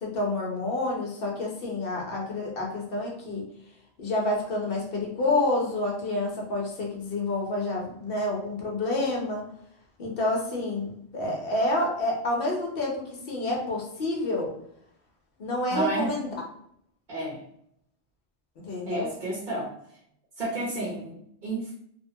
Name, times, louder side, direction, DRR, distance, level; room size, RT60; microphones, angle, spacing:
voice 1, 0.0-3.4 4.0-9.5 10.0-14.5 15.4-16.3 18.6-19.1, left 2 dB, 55° left, -1 dB, 0.9 m, -28 dB
voice 2, 15.7-16.2 17.1-17.4 18.9-19.7 20.4-21.7, right 1 dB, 50° right, -6 dB, 0.9 m, -31 dB
2.8 x 2.2 x 2.7 m, 0.70 s
omnidirectional pair, 1.2 m